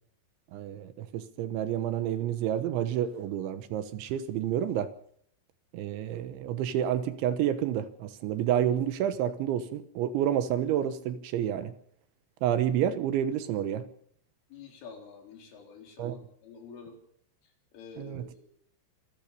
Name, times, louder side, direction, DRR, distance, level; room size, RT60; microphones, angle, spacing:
voice 1, 0.5-4.9 5.7-11.7 12.4-13.9 16.0-16.2 18.0-18.3, right 10 dB, 75° right, 3.3 m, -29 dB
voice 2, 14.5-17.0 17.7-18.5, left 5 dB, 75° left, 6.6 m, -48 dB
26.5 x 14.0 x 6.9 m
omnidirectional pair, 5.7 m